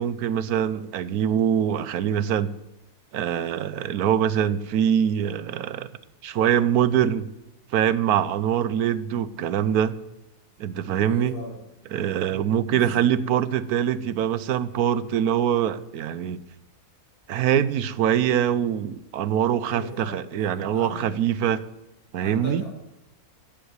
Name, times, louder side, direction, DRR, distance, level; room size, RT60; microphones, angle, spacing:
voice 1, 0.0-2.5 3.1-5.9 6.2-7.3 7.7-10.0 10.6-11.3 11.9-16.4 17.3-21.6 22.1-22.6, right 9 dB, 80° right, 16 dB, 1.2 m, -23 dB
voice 2, 11.0-11.6 12.7-12.9 19.6-21.1 22.2-22.7, left 1 dB, 85° left, -3 dB, 7.1 m, -38 dB
15.0 x 8.1 x 8.1 m, 0.91 s
omnidirectional pair, 1.6 m